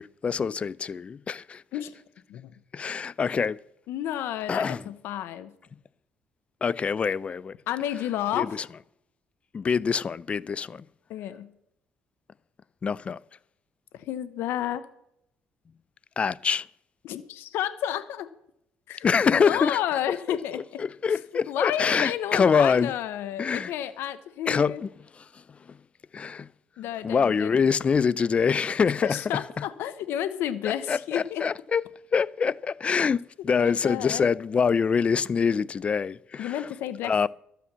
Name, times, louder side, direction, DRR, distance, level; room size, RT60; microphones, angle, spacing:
voice 1, 0.0-1.6 2.7-3.6 4.5-4.8 6.6-7.5 8.3-8.5 9.5-10.8 12.8-13.2 16.2-16.7 19.0-19.8 20.3-22.9 23.4-23.7 24.5-24.9 26.1-26.5 27.0-29.4 30.6-31.8 32.1-36.5 37.0-37.3, left 6 dB, 30° left, 0.4 m, -25 dB
voice 2, 3.9-5.5 7.7-8.5 11.1-11.5 13.9-14.8 17.0-18.3 18.9-20.8 21.1-21.2 21.5-24.8 26.8-27.6 28.8-31.4 33.6-34.3 36.4-37.3, left 11 dB, 80° left, 0.8 m, -31 dB
12.5 x 8.4 x 7.3 m
cardioid pair, 115°, 4 cm